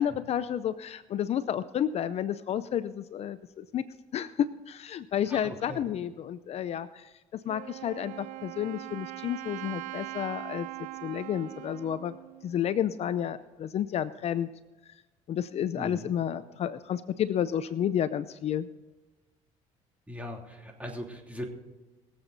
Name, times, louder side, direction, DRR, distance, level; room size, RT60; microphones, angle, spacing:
voice 1, 0.0-3.8 4.1-10.7 11.0-12.2 12.4-14.5 14.9-15.0 15.3-18.7, left 10 dB, 50° left, 14 dB, 0.5 m, -31 dB
voice 2, 5.3-5.8 15.7-16.1 20.1-21.5, equal, 10° right, 1 dB, 3.0 m, -39 dB
Wind instrument woodwind instrument, 7.5-13.2, right 19 dB, 70° right, 0.5 m, -42 dB
22.5 x 8.0 x 4.1 m, 1.2 s
cardioid pair, 95°, 13 cm